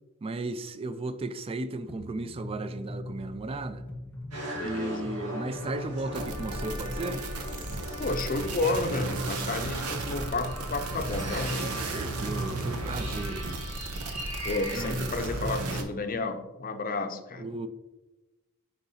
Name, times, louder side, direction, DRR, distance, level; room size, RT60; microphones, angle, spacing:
voice 1, 0.2-3.8 4.6-7.3 11.6-13.6 14.7-15.2 17.4-17.7, right 2 dB, 25° right, 0.3 m, -35 dB
sound 1, 1.9-7.2, left 1 dB, 5° left, 1.0 m, -42 dB
sound 2, 4.3-15.7, equal, 85° right, 1.7 m, -40 dB
voice 2, 4.6-5.1 8.0-11.8 14.4-17.5, left 3 dB, 40° left, 0.6 m, -31 dB
sound 3, 6.1-15.8, right 2 dB, 70° right, 0.8 m, -34 dB
9.7 x 4.0 x 2.8 m
head